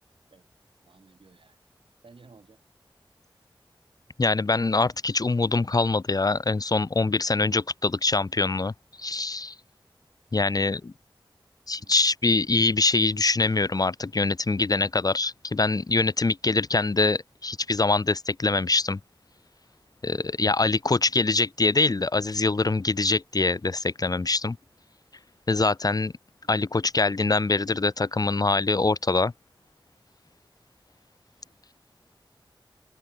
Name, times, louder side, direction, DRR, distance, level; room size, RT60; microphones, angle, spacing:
voice 1, 0.8-1.6 2.0-2.6 11.8-12.0 26.4-26.7 31.3-31.6, right 4 dB, 80° right, 7.1 m, -55 dB
voice 2, 4.2-8.7 9.0-9.5 10.3-10.9 11.7-19.0 20.0-24.6 25.5-26.1 26.5-29.3, left 3 dB, 45° left, 0.7 m, -24 dB
open air
wide cardioid pair, 50°, 9 cm